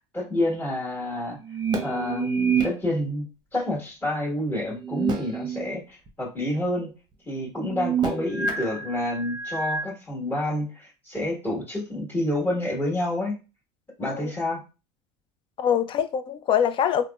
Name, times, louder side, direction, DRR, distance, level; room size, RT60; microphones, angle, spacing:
voice 1, 0.0-1.4 1.8-6.9 7.2-13.3 14.0-14.6, left 1 dB, 15° left, 1.5 m, -28 dB
sound 1, 1.4-2.7 4.8-5.7 6.1-6.2 7.6-9.9, right 6 dB, 30° right, 0.7 m, -28 dB
voice 2, 14.0-14.3 15.6-17.1, left 8 dB, 35° left, 0.4 m, -24 dB
3.4 x 2.0 x 2.4 m
supercardioid pair, 95°, 14 cm